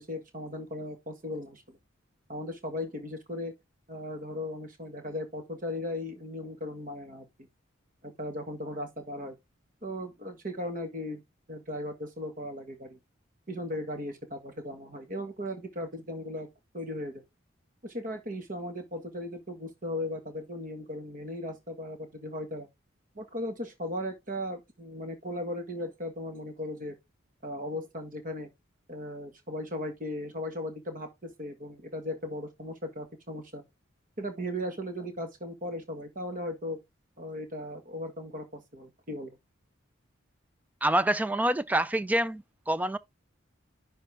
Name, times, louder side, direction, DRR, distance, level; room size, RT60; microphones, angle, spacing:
voice 1, 0.0-1.8 2.3-3.5 3.9-7.5 8.0-9.4 9.8-11.2 11.5-13.0 13.5-16.5 16.7-17.2 17.8-22.7 23.2-27.0 27.4-28.5 28.9-33.6 34.2-36.8 37.2-39.4, left 1 dB, 40° right, 1.7 m, -37 dB
voice 2, 40.8-43.0, right 1 dB, 10° right, 0.3 m, -26 dB
10.5 x 4.5 x 3.4 m
head